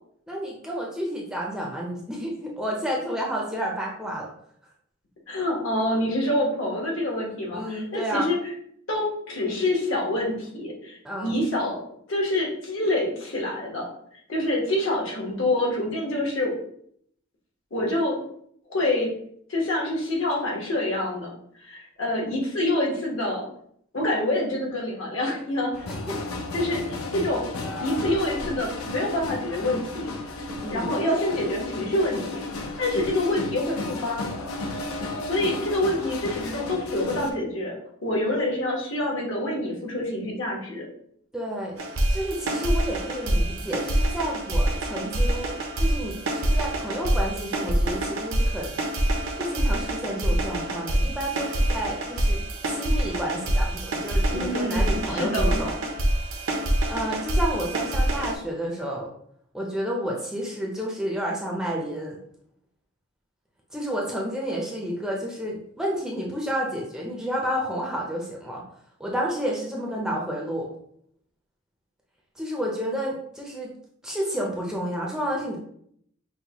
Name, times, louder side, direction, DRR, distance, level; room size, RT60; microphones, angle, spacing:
voice 1, 0.3-4.3 7.5-8.3 11.0-11.4 25.9-26.2 30.6-30.9 41.3-41.8 42.1-48.7 49.4-52.4 52.7-55.8 56.3-56.5 56.9-59.1 59.5-62.2 63.7-68.6 69.0-70.7 72.4-73.7 74.0-75.6, equal, 5° right, -3 dB, 0.5 m, -30 dB
voice 2, 5.3-8.4 8.9-11.8 12.1-13.9 14.3-16.6 17.7-18.2 18.7-19.1 19.5-21.3 21.6-23.5 23.9-25.9 26.5-27.5 27.8-30.1 30.7-32.4 32.8-34.3 35.2-37.7 38.0-40.8 54.3-55.6, left 1 dB, 65° left, -2 dB, 1.2 m, -26 dB
sound 1, 25.7-37.3, left 2 dB, 85° left, 0.6 m, -33 dB
sound 2, 41.8-58.3, right 1 dB, 75° right, 0.7 m, -26 dB
5.4 x 2.2 x 2.9 m, 0.68 s
head